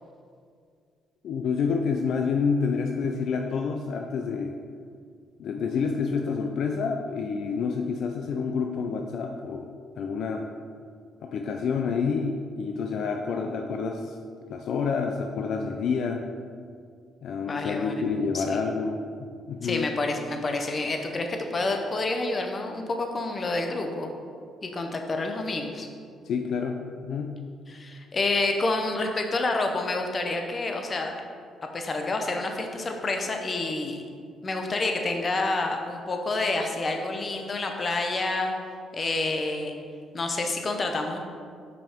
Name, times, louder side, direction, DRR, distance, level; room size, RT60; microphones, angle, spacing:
voice 1, 1.2-4.5 5.4-9.7 10.0-10.5 11.2-14.1 14.5-16.2 17.2-19.0 19.5-19.9 26.2-27.4, left 5 dB, 70° left, 3 dB, 0.3 m, -28 dB
voice 2, 17.5-18.0 18.3-18.6 19.6-24.1 24.6-25.9 27.7-31.1 31.7-34.0 34.4-38.5 38.9-39.7 40.1-41.2, left 2 dB, 35° left, 4 dB, 0.7 m, -28 dB
5.5 x 5.2 x 3.6 m, 2.2 s
cardioid pair, 90°, 0 cm